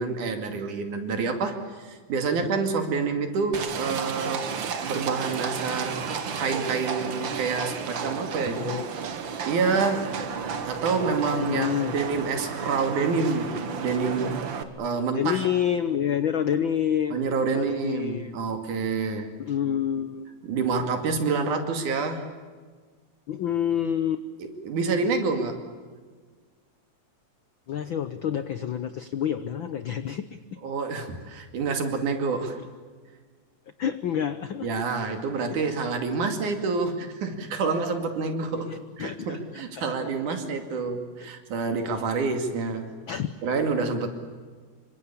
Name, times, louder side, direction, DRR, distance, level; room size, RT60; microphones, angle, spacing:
voice 1, 0.0-4.5 4.8-8.7 9.4-10.2 10.6-14.4 14.8-15.4 17.1-19.3 20.4-22.3 24.4-25.6 30.6-32.6 34.6-42.9 43.4-44.1, right 4 dB, 80° right, 5 dB, 3.9 m, -28 dB
Livestock farm animals working animals, 3.5-14.6, right 6 dB, 50° right, 1.8 m, -32 dB
voice 2, 8.4-8.8 11.4-12.0 15.0-18.3 19.4-20.2 23.3-24.2 27.7-30.4 33.8-34.7 35.3-35.6 38.7-40.4 41.2-41.3 43.1-43.3, left 9 dB, 85° left, 11 dB, 1.0 m, -28 dB
27.0 x 24.5 x 8.6 m, 1.5 s
omnidirectional pair, 3.5 m